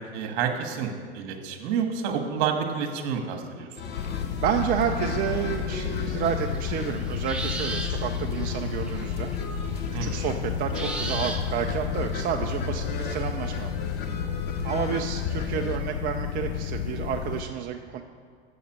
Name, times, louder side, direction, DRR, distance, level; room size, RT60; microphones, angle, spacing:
voice 1, 0.1-3.7 9.9-10.3, right 7 dB, 50° right, 5 dB, 1.5 m, -29 dB
sound 1, 3.8-15.8, left 4 dB, 30° left, 1.0 m, -35 dB
sound 2, 4.0-17.4, left 9 dB, 75° left, 0.6 m, -32 dB
voice 2, 4.4-9.3 9.9-13.7 14.6-18.0, right 9 dB, 30° right, 4 dB, 0.5 m, -30 dB
sound 3, 6.2-9.0 9.3-9.4 9.8-9.9 10.7-11.7, right 2 dB, 5° right, 0.9 m, -35 dB
7.1 x 6.8 x 7.4 m, 2.1 s
hypercardioid pair, 110°, 32 cm